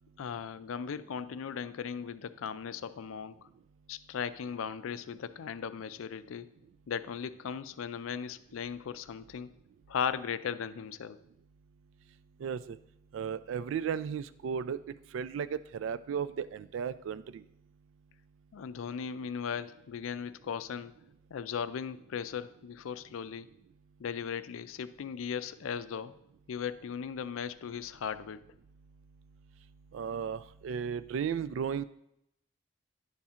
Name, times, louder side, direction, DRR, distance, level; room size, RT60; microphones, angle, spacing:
voice 1, 0.2-3.4 3.9-6.5 6.9-9.5 9.9-11.2 18.5-20.9 21.3-23.5 24.0-26.2 26.5-28.4, left 7 dB, 90° left, 14 dB, 0.4 m, -37 dB
voice 2, 12.4-12.8 13.1-14.8 15.1-17.4 29.9-31.8, right 7 dB, 75° right, 15 dB, 0.3 m, -35 dB
10.5 x 4.3 x 3.6 m, 0.79 s
head